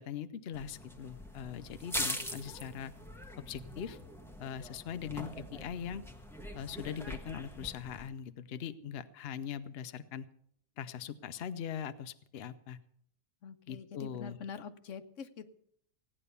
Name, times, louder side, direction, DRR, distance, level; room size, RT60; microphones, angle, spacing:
voice 1, 0.0-2.9 3.5-4.0 4.4-6.0 6.5-10.3 10.8-12.8 13.7-14.4, left 8 dB, 60° left, 10 dB, 0.9 m, -41 dB
sound 1, 0.5-8.1, equal, ahead, 1.2 m, -42 dB
voice 2, 13.4-15.5, left 6 dB, 85° left, 10 dB, 1.2 m, -45 dB
16.0 x 9.9 x 6.8 m, 0.66 s
omnidirectional pair, 1.3 m